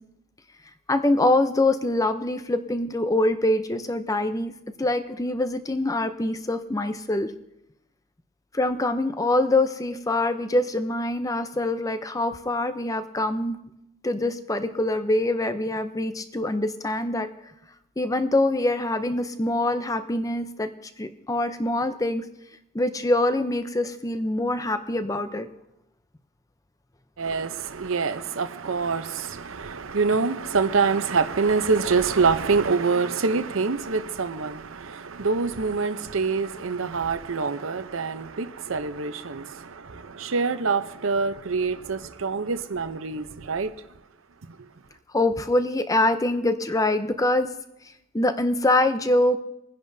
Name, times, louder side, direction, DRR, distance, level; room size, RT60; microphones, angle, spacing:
voice 1, 0.9-4.5 4.8-7.3 8.5-13.6 14.0-17.3 18.0-20.7 21.0-22.3 22.7-25.5 45.1-47.5 48.1-49.4, left 2 dB, 15° left, 0.6 m, -24 dB
voice 2, 27.2-43.7, right 4 dB, 75° right, 0.8 m, -25 dB
22.0 x 10.5 x 2.7 m
head